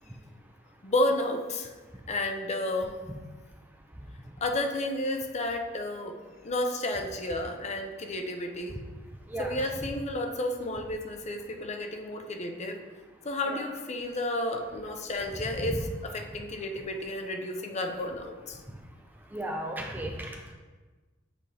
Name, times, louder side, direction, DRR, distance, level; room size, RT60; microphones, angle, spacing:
voice 1, 0.8-1.7 2.1-3.0 4.4-6.2 6.4-8.8 9.4-12.8 13.2-18.6, left 1 dB, 35° left, 4 dB, 0.6 m, -31 dB
voice 2, 19.3-20.5, right 1 dB, 10° right, 1 dB, 0.5 m, -35 dB
7.7 x 4.2 x 3.3 m, 1.3 s
head